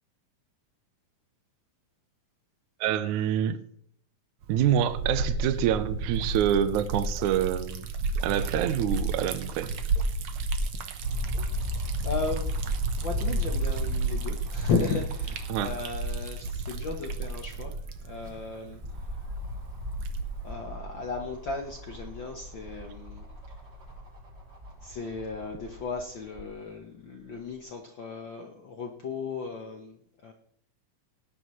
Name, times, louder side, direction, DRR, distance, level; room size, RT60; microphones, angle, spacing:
voice 1, 2.8-3.6 4.5-7.9 8.2-9.7 15.5-15.7, right 10 dB, 80° right, 12 dB, 2.0 m, -26 dB
Liquid, 4.4-20.5, right 3 dB, 65° right, 1.4 m, -32 dB
sound 1, 11.0-16.1 16.5-16.6 17.9-26.5 27.3-27.4, left 1 dB, 20° right, 3.0 m, -37 dB
voice 2, 12.0-12.5 13.0-17.8 18.0-19.1 20.4-23.5 24.8-30.3, left 4 dB, 65° left, 3 dB, 1.2 m, -35 dB
19.0 x 10.0 x 3.2 m, 0.66 s
omnidirectional pair, 3.6 m